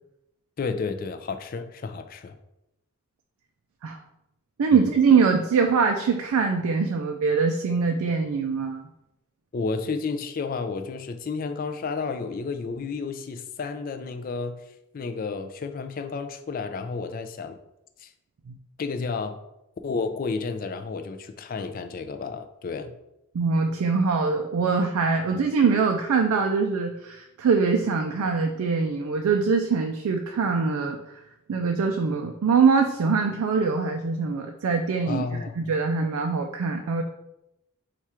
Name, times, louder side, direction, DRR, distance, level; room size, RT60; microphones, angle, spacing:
voice 1, 0.6-2.4 4.7-4.9 9.5-14.6 14.9-17.6 18.0-18.1 18.8-19.4 19.8-22.9 25.3-25.5 35.1-35.6, left 4 dB, 40° left, 8 dB, 0.3 m, -31 dB
voice 2, 4.6-8.8 18.5-18.6 23.3-31.0 31.5-35.3 35.6-37.0, right 5 dB, 85° right, 4 dB, 0.4 m, -23 dB
4.6 x 2.4 x 4.3 m, 0.88 s
head